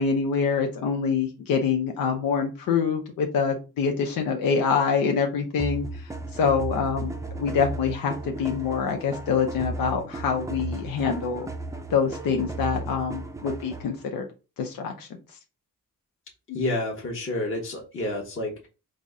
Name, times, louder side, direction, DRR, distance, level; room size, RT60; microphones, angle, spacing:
voice 1, 0.0-7.1 7.4-11.5 11.9-14.3 14.6-15.1, left 6 dB, 80° left, 3 dB, 0.6 m, -25 dB
sound 1, 5.6-14.0, right 2 dB, 10° right, 0.4 m, -35 dB
voice 2, 16.5-18.7, left 2 dB, 40° left, -1 dB, 1.0 m, -29 dB
3.9 x 2.0 x 3.5 m, 0.32 s
cardioid pair, 85°, 33 cm